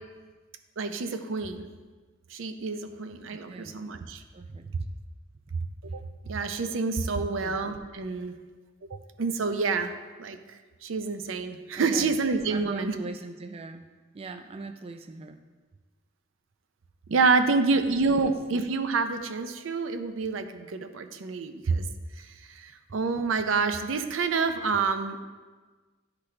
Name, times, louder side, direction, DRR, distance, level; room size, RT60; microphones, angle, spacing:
voice 1, 0.8-1.7 2.3-4.2 5.8-6.0 6.2-8.3 9.2-9.9 10.2-10.4 10.8-12.9 17.1-21.9 22.2-25.2, right 4 dB, 85° right, 9 dB, 0.5 m, -28 dB
voice 2, 3.3-3.8 4.3-4.9 7.2-7.6 8.9-9.0 11.8-12.2 12.5-13.9 14.1-15.4 17.5-17.6 18.0-18.2, right 3 dB, 30° right, 8 dB, 0.3 m, -40 dB
11.5 x 4.0 x 3.2 m, 1.4 s
head